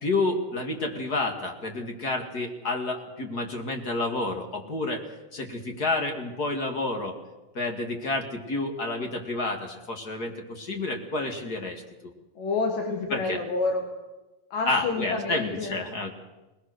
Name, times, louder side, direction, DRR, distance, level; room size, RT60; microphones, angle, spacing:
voice 1, 0.0-5.0 5.3-7.1 7.5-11.8 13.1-13.4 14.7-16.1, left 2 dB, 35° left, 3 dB, 1.8 m, -29 dB
voice 2, 12.4-13.9 14.5-15.7, left 3 dB, 70° left, 2 dB, 3.5 m, -28 dB
20.5 x 20.0 x 6.5 m, 1.1 s
omnidirectional pair, 4.1 m